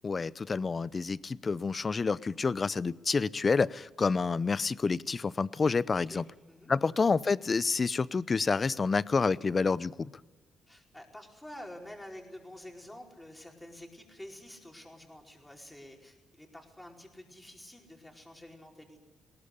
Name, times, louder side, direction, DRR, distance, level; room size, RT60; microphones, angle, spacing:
voice 1, 0.0-6.2 6.7-10.1, left 4 dB, 35° left, 19 dB, 0.6 m, -28 dB
voice 2, 5.9-6.7 10.7-19.0, left 1 dB, 10° left, 1 dB, 4.8 m, -49 dB
20.5 x 18.0 x 9.9 m, 1.3 s
cardioid pair, 90°, 0 cm